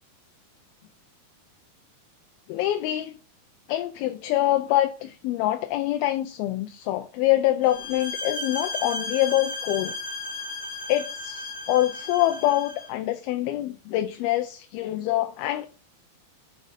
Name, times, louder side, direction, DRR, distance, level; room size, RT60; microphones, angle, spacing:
voice 1, 2.5-3.2 3.7-9.9 10.9-15.7, left 14 dB, 80° left, 2.4 m, -25 dB
sound 1, 7.6-12.9, left 2 dB, 35° left, 0.7 m, -34 dB
6.4 x 5.1 x 5.6 m
omnidirectional pair, 4.5 m